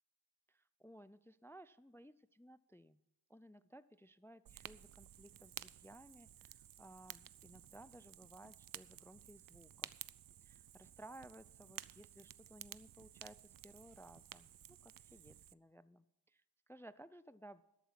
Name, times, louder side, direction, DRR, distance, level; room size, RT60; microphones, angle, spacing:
voice 1, 0.5-3.0 3.3-9.9 10.4-17.6, right 1 dB, 5° left, 16 dB, 0.3 m, -59 dB
Fire, 4.5-15.5, right 11 dB, 50° right, 0.5 m, -54 dB
13.0 x 8.6 x 5.8 m, 0.91 s
cardioid pair, 60°, 44 cm